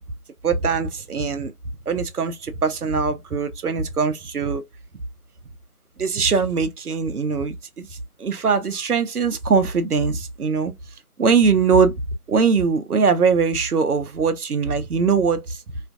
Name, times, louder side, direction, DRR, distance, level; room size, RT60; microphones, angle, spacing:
voice 1, 0.4-1.5 1.9-4.6 6.0-7.9 8.2-10.7 11.2-11.9 12.3-15.6, right 5 dB, 80° right, 0.6 m, -21 dB
2.5 x 2.4 x 2.3 m
figure-of-eight pair, 175°, 45 cm